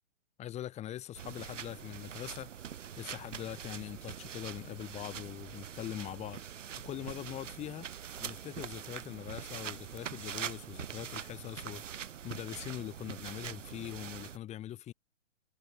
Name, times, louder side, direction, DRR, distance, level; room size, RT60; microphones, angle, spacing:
voice 1, 0.4-6.4 6.8-7.9 8.2-14.9, left 12 dB, 15° left, 2.8 m, -42 dB
sound 1, 1.1-14.4, right 9 dB, 70° right, 1.8 m, -44 dB
hypercardioid pair, 145°, 38 cm